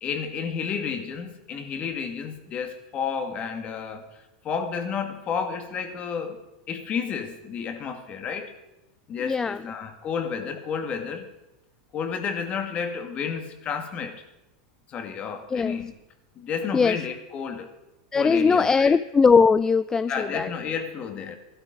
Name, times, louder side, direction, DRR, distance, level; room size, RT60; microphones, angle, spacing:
voice 1, 0.0-4.0 4.4-6.4 6.7-8.5 9.1-11.3 11.9-14.2 14.9-15.9 16.4-17.7 18.1-19.0 20.1-21.4, left 6 dB, 35° left, 6 dB, 2.2 m, -31 dB
voice 2, 9.2-9.6 15.5-15.8 16.7-17.0 18.1-20.5, left 5 dB, 15° left, 15 dB, 0.4 m, -20 dB
15.0 x 12.5 x 5.3 m, 0.96 s
supercardioid pair, 125°, 4 cm